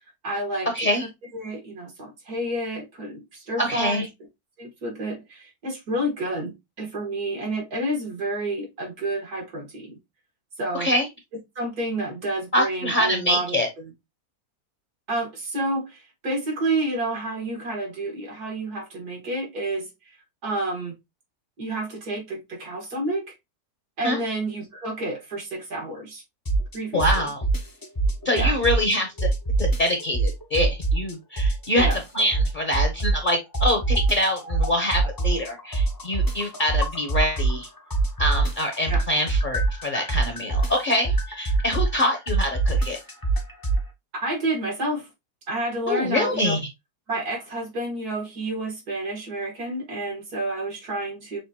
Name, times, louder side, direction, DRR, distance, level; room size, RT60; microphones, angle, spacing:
voice 1, 0.2-0.7 1.0-4.1 4.6-10.0 10.6-10.9 11.6-13.6 15.1-20.1 20.4-20.9 21.6-23.3 24.0-26.2 26.7-27.2 28.3-28.6 31.8-32.0 38.9-39.0 44.2-45.1 45.5-46.6 47.1-51.4, right 1 dB, 80° right, 2.4 m, -29 dB
voice 2, 0.7-1.1 3.6-4.0 10.7-11.1 12.5-13.7 24.0-24.2 26.9-27.4 28.2-29.1 29.6-31.9 32.1-37.7 38.2-43.0 45.9-46.6, left 1 dB, 40° left, 0.9 m, -25 dB
sound 1, 26.5-26.7 27.0-28.9 29.2-31.1 31.4-33.3 33.5-37.7 37.9-43.8, right 3 dB, 25° left, 0.5 m, -23 dB
6.3 x 2.5 x 2.8 m
omnidirectional pair, 1.6 m